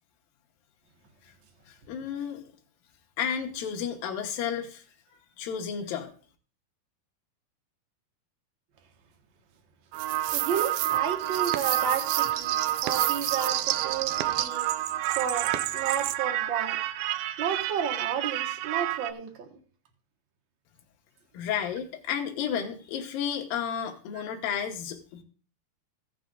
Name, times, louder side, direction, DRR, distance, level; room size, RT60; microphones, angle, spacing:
voice 1, 1.7-2.4 3.2-4.8 5.4-6.1 21.3-25.2, left 8 dB, 80° left, 2.9 m, -32 dB
sound 1, 9.9-19.1, right 14 dB, 85° right, 2.4 m, -28 dB
voice 2, 10.3-14.7 15.1-16.8 17.4-19.5, right 7 dB, 50° right, 1.6 m, -32 dB
16.0 x 6.2 x 3.8 m
omnidirectional pair, 4.1 m